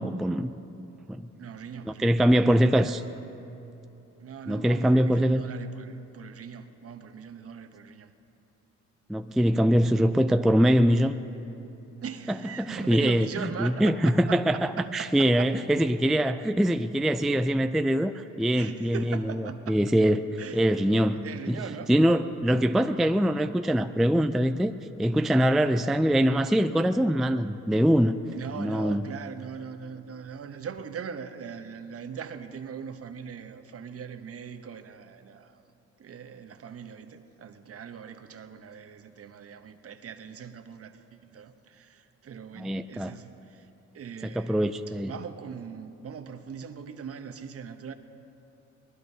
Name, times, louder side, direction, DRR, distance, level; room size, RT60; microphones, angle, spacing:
voice 1, 0.0-0.5 1.1-1.3 2.0-3.0 4.5-5.5 9.1-11.2 12.6-20.2 20.5-21.2 21.5-21.6 21.9-24.7 25.0-28.2 28.6-29.1 42.6-43.1 44.2-45.1, equal, ahead, 9 dB, 0.3 m, -23 dB
voice 2, 1.4-3.0 4.2-8.1 12.0-15.5 18.5-19.8 20.4-20.7 21.1-21.9 28.3-35.6 36.0-43.7 43.9-47.9, right 7 dB, 50° right, 8 dB, 0.9 m, -40 dB
23.5 x 19.0 x 2.8 m, 3.0 s
cardioid pair, 90°, 30 cm